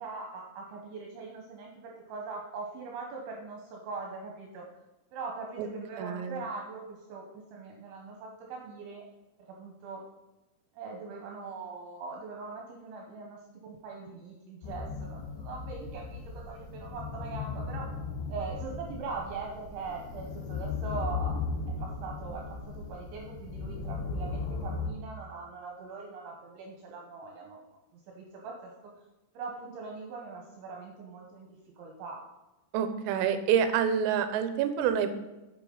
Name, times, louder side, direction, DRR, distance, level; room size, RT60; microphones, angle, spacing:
voice 1, 0.0-4.7 5.1-9.0 9.4-10.0 10.7-17.9 18.3-21.4 21.8-27.6 27.9-28.9 29.3-32.2, right 4 dB, 75° right, 0 dB, 3.1 m, -41 dB
voice 2, 6.0-6.4 32.7-35.2, right 8 dB, 90° right, 9 dB, 3.4 m, -27 dB
sound 1, 14.6-24.9, left 4 dB, 70° left, 2.8 m, -37 dB
9.1 x 8.0 x 3.9 m, 1.0 s
omnidirectional pair, 5.9 m